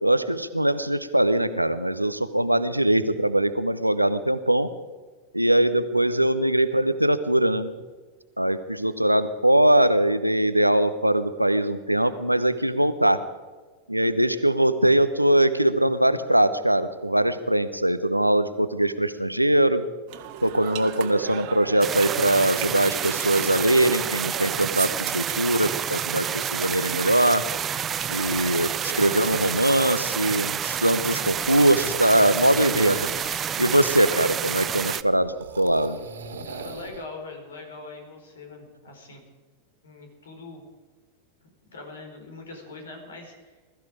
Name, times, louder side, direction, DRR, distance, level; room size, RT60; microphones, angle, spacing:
voice 1, 0.0-4.7 5.3-7.7 8.4-13.2 13.9-19.8 20.4-27.4 28.1-36.0, right 1 dB, 85° right, 12 dB, 1.0 m, -22 dB
sound 1, 20.1-25.6, right 10 dB, 45° right, 1.7 m, -36 dB
sound 2, 21.8-35.0, right 8 dB, 25° right, 0.6 m, -29 dB
sound 3, 27.5-37.1, right 4 dB, 65° right, 2.2 m, -42 dB
voice 2, 36.4-39.2 39.8-40.6 41.7-43.6, left 3 dB, 65° left, 3 dB, 4.7 m, -42 dB
21.0 x 14.0 x 5.0 m, 1.3 s
figure-of-eight pair, 90°, 0 cm